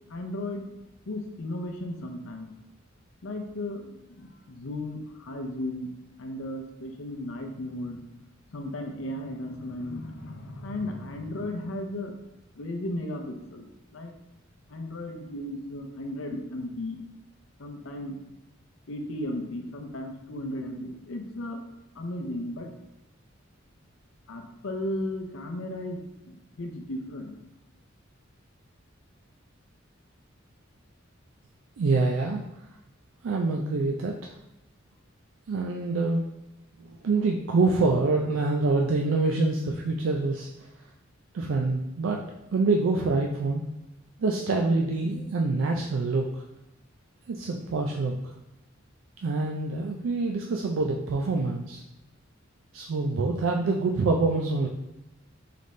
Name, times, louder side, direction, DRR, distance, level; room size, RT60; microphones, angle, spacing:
voice 1, 0.1-0.7 1.1-2.5 3.2-5.9 6.2-8.0 8.5-12.1 12.6-14.1 14.7-17.0 17.6-18.2 18.9-21.6 21.9-22.7 24.3-27.3, left 1 dB, 85° left, 3 dB, 0.6 m, -35 dB
voice 2, 31.8-32.4 33.2-34.3 35.5-36.3 36.8-40.5 41.3-42.2 42.5-43.6 44.2-46.3 47.3-48.3 49.2-51.8 52.7-54.7, right 3 dB, 75° right, 1 dB, 0.4 m, -26 dB
3.9 x 3.4 x 3.2 m, 0.92 s
head